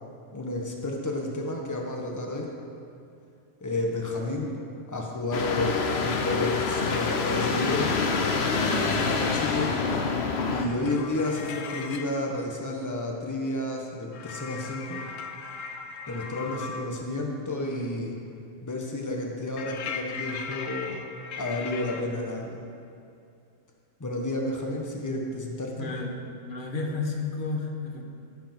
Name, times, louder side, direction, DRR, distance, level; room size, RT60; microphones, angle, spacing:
voice 1, 0.3-2.5 3.6-4.6 4.9-8.0 8.4-9.8 10.4-15.0 16.1-18.2 18.6-21.0 21.4-22.6 24.0-26.0, left 2 dB, 15° left, 0 dB, 1.1 m, -31 dB
sound 1, 5.3-10.7, left 4 dB, 60° left, 1.0 m, -26 dB
sound 2, 10.6-12.2 14.1-16.9 19.6-22.0, left 5 dB, 85° left, 1.1 m, -38 dB
voice 2, 25.8-28.0, left 3 dB, 45° left, 1 dB, 1.3 m, -32 dB
15.0 x 5.1 x 6.0 m, 2.5 s
omnidirectional pair, 1.3 m